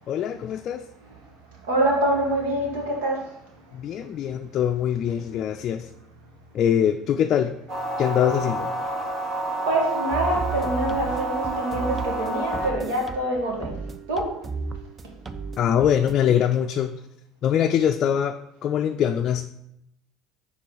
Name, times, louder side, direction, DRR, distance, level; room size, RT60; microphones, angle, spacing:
voice 1, 0.1-0.8 3.7-5.9 6.5-7.5 8.0-8.7 15.6-16.9 17.4-18.3 18.6-19.5, left 9 dB, 55° left, 6 dB, 0.4 m, -23 dB
voice 2, 1.6-3.3 9.7-13.8 14.1-14.4, right 1 dB, 80° right, 0 dB, 1.6 m, -25 dB
sound 1, 7.7-12.7, right 1 dB, 50° right, 2.1 m, -29 dB
sound 2, 10.1-16.1, right 4 dB, 30° right, 0.6 m, -34 dB
4.4 x 4.2 x 5.5 m, 0.79 s
hypercardioid pair, 75°, 0 cm